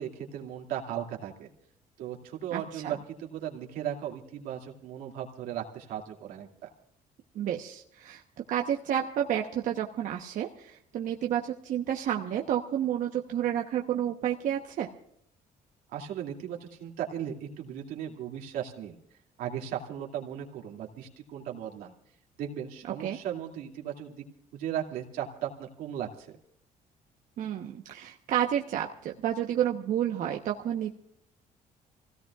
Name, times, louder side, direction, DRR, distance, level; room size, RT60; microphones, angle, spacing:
voice 1, 0.0-1.5 2.0-6.7 15.9-19.0 19.4-21.9 22.4-24.2 24.5-26.4, right 10 dB, 90° right, 0 dB, 2.5 m, -37 dB
voice 2, 2.5-2.9 7.3-8.2 8.5-14.9 23.0-23.2 27.4-30.9, right 10 dB, 65° right, 2 dB, 1.1 m, -30 dB
28.0 x 17.0 x 2.4 m, 0.68 s
cardioid pair, 120°, 14 cm